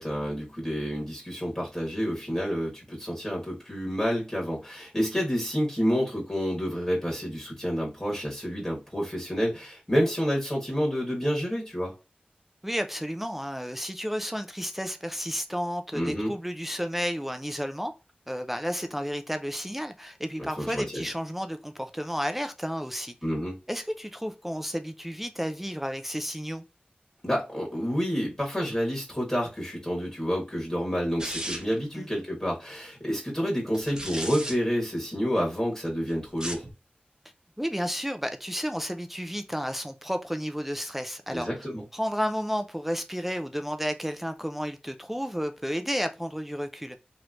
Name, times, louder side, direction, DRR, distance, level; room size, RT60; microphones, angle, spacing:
voice 1, 0.0-11.9 15.9-16.3 20.4-21.0 23.2-23.6 27.2-36.6 41.3-41.8, equal, 20° left, 1.4 m, -29 dB
voice 2, 12.6-17.9 18.3-23.1 23.7-26.6 31.9-32.1 37.6-41.5 41.9-47.0, equal, 5° right, 0.3 m, -32 dB
sound 1, 31.2-31.8 33.7-34.5 36.3-36.7, right 1 dB, 25° right, 0.8 m, -35 dB
3.2 x 3.1 x 2.4 m
wide cardioid pair, 60°, 3 cm